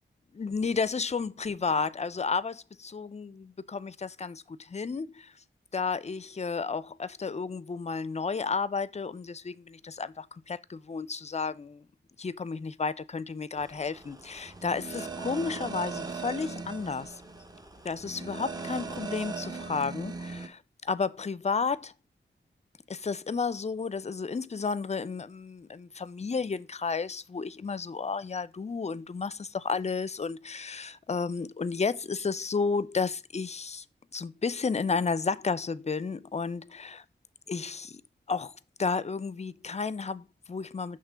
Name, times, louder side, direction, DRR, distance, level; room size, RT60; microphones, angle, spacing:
voice 1, 0.3-5.3 5.7-11.8 12.2-17.2 17.8-21.9 22.9-33.8 34.1-37.0 37.5-38.0 38.3-41.0, left 5 dB, 35° left, 0.4 m, -32 dB
sound 1, 13.6-20.5, right 4 dB, 20° right, 0.8 m, -39 dB
5.9 x 3.1 x 5.4 m
cardioid pair, 65°, 20 cm